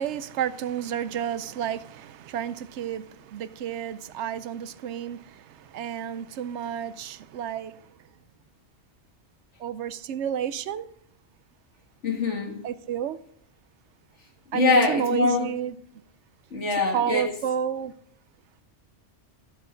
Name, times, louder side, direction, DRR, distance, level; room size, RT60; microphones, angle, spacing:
voice 1, 0.0-7.8 9.6-10.9 12.6-13.2 14.5-15.8 16.9-17.9, right 9 dB, 80° right, 0.9 m, -31 dB
voice 2, 12.0-12.6 14.5-15.5 16.5-17.3, left 4 dB, 90° left, 2.2 m, -23 dB
12.5 x 8.0 x 3.8 m
omnidirectional pair, 1.2 m